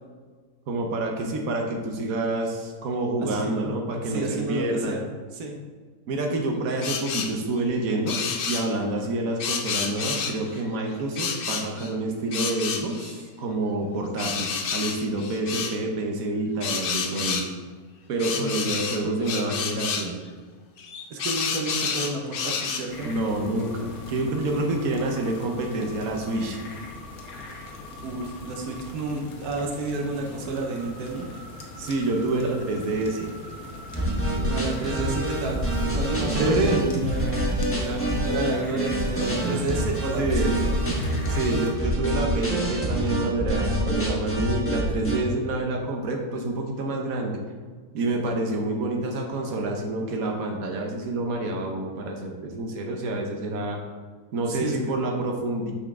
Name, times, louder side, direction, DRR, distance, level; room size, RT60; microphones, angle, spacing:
voice 1, 0.7-5.0 6.1-8.2 8.5-17.4 18.1-20.2 23.0-26.6 31.8-33.3 36.3-36.8 40.2-40.5 41.3-47.4 47.9-53.8 54.3-55.7, right 2 dB, 70° right, 1 dB, 1.3 m, -27 dB
voice 2, 3.2-3.8 4.0-5.1 5.3-5.6 18.3-18.6 21.1-23.1 28.0-31.3 34.5-37.5 37.7-40.7 54.5-55.0, right 3 dB, 90° right, 1 dB, 1.3 m, -31 dB
sound 1, 6.8-7.4 8.1-8.7 9.4-10.6 11.2-11.9 12.3-13.1 14.2-15.8 16.6-17.5 18.2-20.1 20.8-22.9, left 5 dB, 60° left, 0.6 m, -29 dB
sound 2, 22.9-41.7, left 1 dB, 75° left, 1.4 m, -40 dB
sound 3, 33.9-45.2, right 1 dB, 10° left, 1.1 m, -26 dB
6.0 x 5.8 x 3.6 m, 1.5 s
omnidirectional pair, 1.6 m